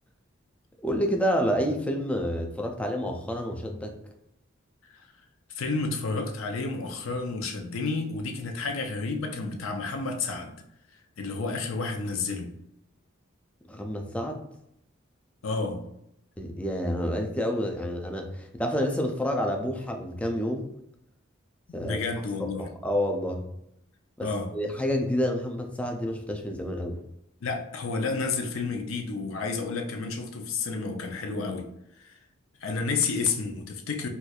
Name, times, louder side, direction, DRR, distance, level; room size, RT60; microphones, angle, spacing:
voice 1, 0.8-3.9 13.7-14.5 16.4-20.7 21.7-22.0 22.4-23.4 24.2-27.0, equal, 5° left, 2 dB, 0.3 m, -29 dB
voice 2, 5.5-10.5 11.2-12.5 15.4-15.8 21.7-22.7 24.2-24.5 27.4-31.7 32.0-32.1 32.6-34.1, left 4 dB, 85° left, 4 dB, 0.5 m, -30 dB
4.2 x 2.3 x 2.3 m, 0.79 s
head